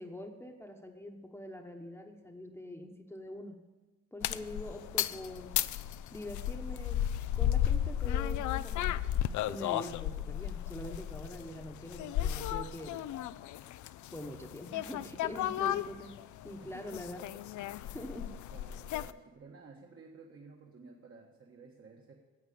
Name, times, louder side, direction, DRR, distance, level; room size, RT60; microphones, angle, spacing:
voice 1, 0.0-3.6 4.1-5.6 6.1-7.0 7.4-9.0 9.5-13.0 14.1-16.2 16.4-17.2 17.6-18.4, left 1 dB, 10° left, 2 dB, 1.1 m, -44 dB
sound 1, 4.2-19.1, left 11 dB, 75° left, 0.5 m, -34 dB
voice 2, 16.6-17.0 18.5-22.1, right 4 dB, 45° right, 0 dB, 1.5 m, -54 dB
9.4 x 8.2 x 8.5 m, 1.2 s
cardioid pair, 90°, 30 cm